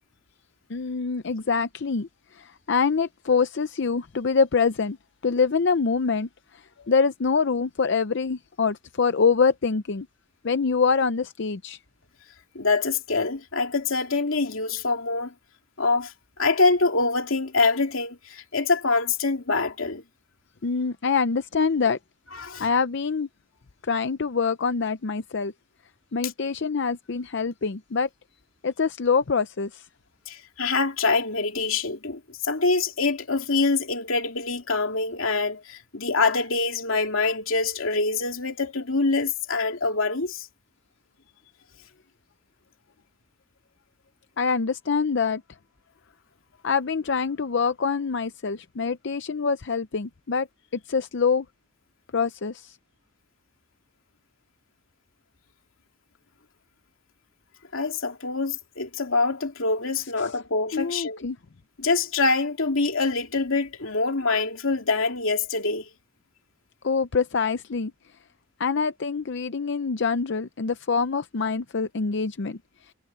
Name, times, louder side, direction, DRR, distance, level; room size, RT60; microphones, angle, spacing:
voice 1, 0.7-5.0 5.2-10.1 10.4-11.8 20.6-22.0 22.6-23.3 23.8-25.5 26.1-28.1 28.6-29.9 44.4-45.4 46.6-50.5 50.7-51.5 52.1-52.8 60.7-61.4 66.8-67.9 68.6-72.6, left 5 dB, 60° left, 0.6 m, -25 dB
voice 2, 12.5-15.3 15.8-20.0 22.3-22.7 26.2-26.3 30.3-40.5 57.7-61.3 61.8-65.9, left 3 dB, 85° left, 2.6 m, -25 dB
head